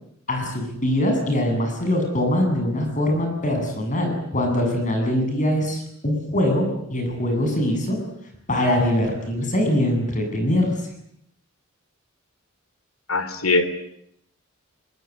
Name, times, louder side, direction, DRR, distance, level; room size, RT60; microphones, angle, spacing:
voice 1, 0.3-8.0 8.5-10.7, left 1 dB, 35° left, 4 dB, 8.0 m, -22 dB
voice 2, 13.1-13.7, left 3 dB, 75° left, 11 dB, 3.1 m, -21 dB
23.5 x 22.0 x 9.8 m, 0.75 s
head